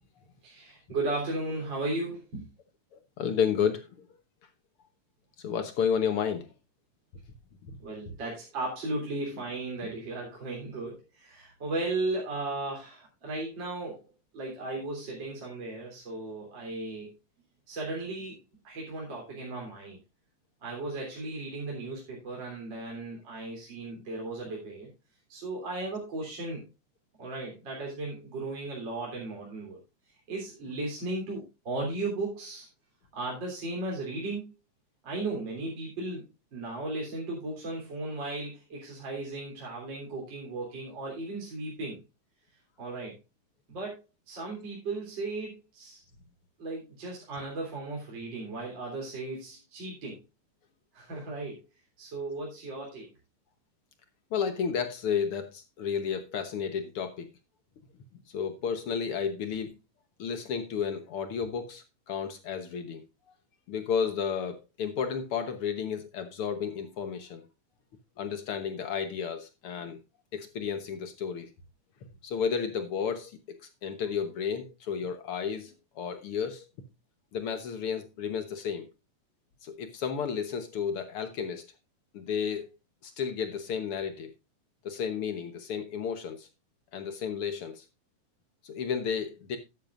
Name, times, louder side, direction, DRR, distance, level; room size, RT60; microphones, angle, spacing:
voice 1, 0.4-2.5 7.8-14.0 14.3-17.1 17.7-18.4 18.6-20.0 20.6-24.9 25.3-26.6 27.2-29.8 30.3-32.7 33.1-34.4 35.0-36.3 36.5-42.0 42.8-43.2 43.7-44.0 44.3-46.0 46.6-50.2 50.9-51.6 52.0-53.1, right 2 dB, 35° right, 3.9 m, -36 dB
voice 2, 3.2-3.9 5.4-6.5 7.7-7.8 51.1-51.3 54.3-57.3 58.3-59.7 60.2-63.0 63.7-67.4 68.2-70.0 70.3-71.5 72.2-76.6 77.3-78.9 79.6-81.7 82.1-82.7 83.0-84.3 84.8-86.5 86.9-87.8 88.6-89.6, left 7 dB, 65° left, 1.4 m, -32 dB
12.5 x 10.5 x 2.5 m
omnidirectional pair, 3.8 m